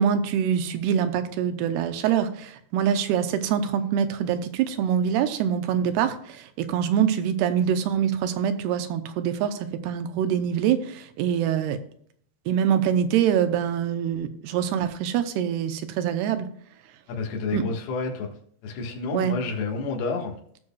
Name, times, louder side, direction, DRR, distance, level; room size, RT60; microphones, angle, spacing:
voice 1, 0.0-11.8 12.5-16.5 17.5-17.7 19.1-19.3, right 8 dB, 80° right, 9 dB, 2.7 m, -24 dB
voice 2, 17.1-18.3 18.6-20.4, left 4 dB, 70° left, 0 dB, 3.4 m, -29 dB
18.0 x 6.3 x 2.3 m, 0.64 s
omnidirectional pair, 4.8 m